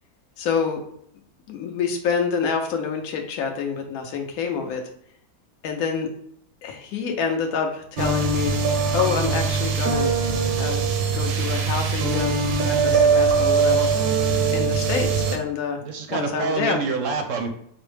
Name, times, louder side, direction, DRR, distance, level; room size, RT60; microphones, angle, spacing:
voice 1, 0.4-0.8 1.5-4.8 5.6-6.1 6.6-8.5 8.9-10.1 10.6-10.8 11.1-13.9 14.5-15.8 16.1-16.8, left 6 dB, 75° left, 3 dB, 1.0 m, -27 dB
sound 1, 8.0-15.4, right 5 dB, 85° right, 1.2 m, -21 dB
voice 2, 15.8-17.5, right 4 dB, 70° right, 5 dB, 0.8 m, -26 dB
5.3 x 2.0 x 3.2 m, 0.68 s
omnidirectional pair, 1.6 m